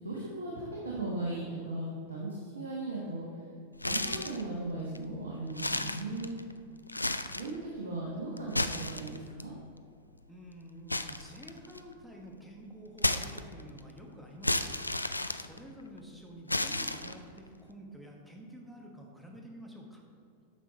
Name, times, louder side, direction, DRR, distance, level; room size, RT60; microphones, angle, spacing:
voice 1, 0.0-3.2 3.8-6.3 7.3-9.5, right 2 dB, 70° right, -5 dB, 1.3 m, -37 dB
sound 1, 3.8-4.5 5.0-5.1 5.5-6.5 6.9-7.6 8.4-9.4 10.9-11.9 13.0-13.8 14.4-16.0 16.5-17.4, left 2 dB, 85° left, 0.3 m, -32 dB
voice 2, 10.3-14.7 15.4-20.0, equal, ahead, -1 dB, 1.3 m, -49 dB
9.0 x 6.4 x 4.1 m, 2.4 s
figure-of-eight pair, 90°, 0 cm